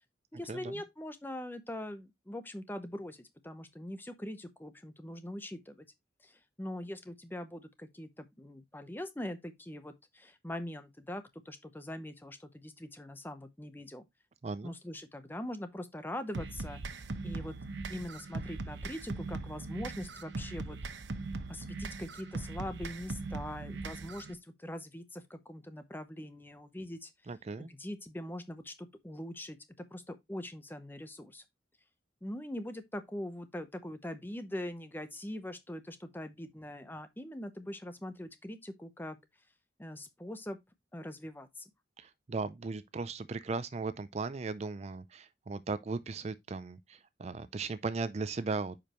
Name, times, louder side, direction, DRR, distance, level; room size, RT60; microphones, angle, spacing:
voice 1, 0.3-5.9 6.2-14.1 14.6-16.8 17.2-17.5 17.9-20.8 21.5-27.1 27.6-29.6 29.9-31.4 32.2-39.2 39.8-40.6 40.9-41.6, left 1 dB, 10° left, 0.7 m, -42 dB
voice 2, 14.4-14.7 27.3-27.7 42.0-48.8, right 4 dB, 35° right, 0.4 m, -37 dB
sound 1, 16.3-24.3, right 3 dB, 80° right, 0.8 m, -40 dB
8.8 x 5.1 x 2.9 m
head